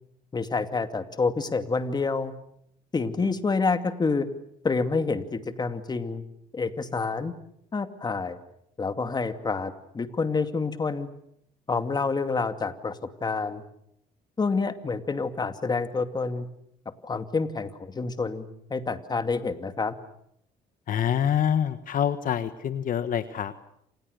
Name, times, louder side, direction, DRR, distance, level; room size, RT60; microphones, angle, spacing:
voice 1, 0.3-2.3 2.9-4.3 4.6-6.2 6.5-7.3 7.7-8.4 8.8-11.1 11.7-13.6 14.4-16.5 17.0-20.0, left 4 dB, 25° left, 9 dB, 2.4 m, -28 dB
voice 2, 20.9-23.6, left 9 dB, 55° left, 11 dB, 1.5 m, -26 dB
29.0 x 27.5 x 6.7 m, 0.74 s
cardioid pair, 110°, 17 cm